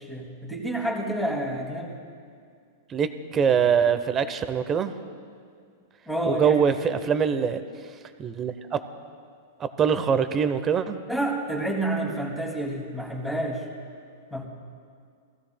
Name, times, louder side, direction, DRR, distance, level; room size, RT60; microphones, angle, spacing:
voice 1, 0.0-2.0 6.1-6.6 11.1-13.7 14.3-14.5, right 1 dB, ahead, -2 dB, 2.3 m, -29 dB
voice 2, 2.9-4.9 6.2-7.6 8.2-8.8 9.6-11.0, right 7 dB, 20° right, 10 dB, 0.6 m, -23 dB
22.5 x 15.5 x 2.2 m, 2.2 s
supercardioid pair, 150°, 0 cm